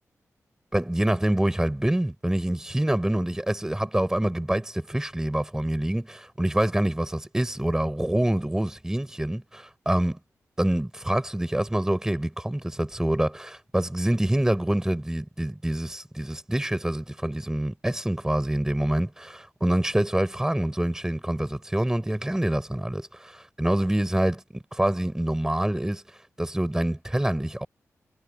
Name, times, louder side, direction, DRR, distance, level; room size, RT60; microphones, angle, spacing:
voice 1, 0.7-10.2 10.6-26.0 26.4-27.7, right 1 dB, 10° right, 4.4 m, -26 dB
wide cardioid pair, 100°, 6 cm